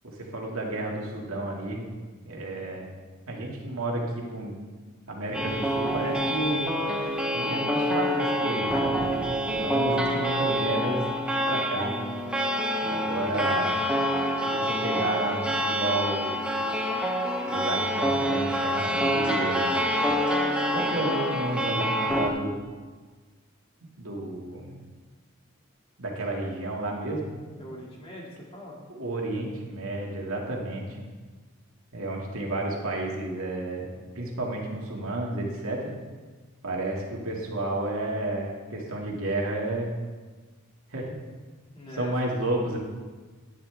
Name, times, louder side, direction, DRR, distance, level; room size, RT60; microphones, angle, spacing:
voice 1, 0.0-1.8 2.2-2.9 3.3-4.6 5.1-6.7 7.3-9.1 9.5-11.0 11.5-11.9 12.8-13.9 14.4-16.4 17.5-19.8 20.7-22.6 24.0-24.8 26.0-27.3 28.9-31.0 31.9-33.9 34.1-35.9 36.6-39.9 40.9-41.2 41.9-42.8, right 2 dB, 80° right, -2 dB, 2.1 m, -31 dB
sound 1, 5.3-22.3, equal, 5° right, 0.8 m, -27 dB
voice 2, 27.5-28.8 41.7-42.1, equal, 25° left, -3 dB, 2.1 m, -42 dB
11.5 x 10.0 x 3.4 m, 1.4 s
head